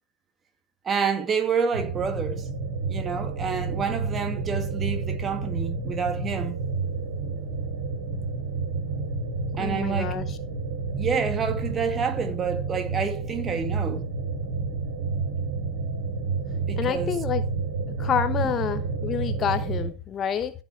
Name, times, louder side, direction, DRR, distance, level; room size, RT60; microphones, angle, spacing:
voice 1, 0.8-2.5 2.9-6.6 9.6-10.2 11.0-14.1 16.5-17.1 18.4-18.5, right 6 dB, 20° right, 2.1 m, -28 dB
sound 1, 1.7-19.9, right 4 dB, 65° right, 3.4 m, -30 dB
voice 2, 9.6-10.4 16.8-17.4 17.9-20.5, left 8 dB, 25° left, 0.9 m, -28 dB
14.5 x 5.9 x 4.6 m
figure-of-eight pair, 90°, 0 cm